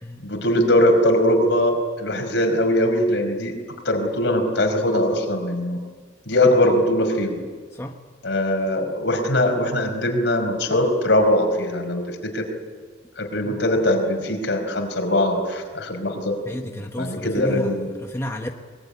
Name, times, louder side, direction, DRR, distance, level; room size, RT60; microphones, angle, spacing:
voice 1, 0.2-3.5 3.8-5.8 6.3-7.4 8.2-12.4 13.2-16.4 17.0-17.9, left 1 dB, 65° left, 4 dB, 4.9 m, -21 dB
voice 2, 6.4-6.7 7.7-8.0 13.4-13.6 16.5-17.8 18.0-18.5, equal, 15° left, 2 dB, 1.3 m, -31 dB
24.0 x 22.0 x 9.9 m, 1.5 s
head